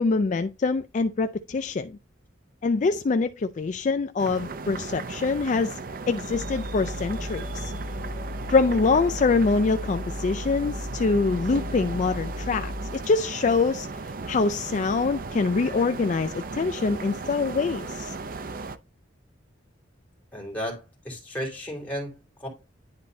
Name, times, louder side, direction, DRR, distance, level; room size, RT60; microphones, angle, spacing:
voice 1, 0.0-2.0 2.6-5.8 6.1-7.7 8.5-13.9 14.3-18.2, left 4 dB, 40° left, 0.3 m, -24 dB
sound 1, 4.2-18.8, right 3 dB, 50° right, 0.5 m, -36 dB
sound 2, 6.3-13.1, left 1 dB, 90° left, 0.8 m, -35 dB
voice 2, 20.3-22.5, equal, 10° left, 3.0 m, -34 dB
10.5 x 4.1 x 2.7 m
head